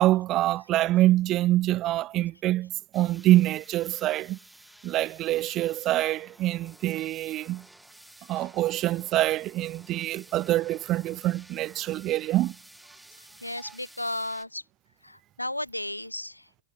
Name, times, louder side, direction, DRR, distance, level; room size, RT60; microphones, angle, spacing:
voice 1, 0.0-4.4 4.8-7.6 8.3-12.5, right 15 dB, 35° right, 0.4 m, -25 dB
sound 1, 2.9-14.4, right 1 dB, 5° right, 1.7 m, -53 dB
voice 2, 13.2-14.6 15.0-16.5, left 1 dB, 85° left, 0.5 m, -34 dB
figure-of-eight pair, 90°, 0 cm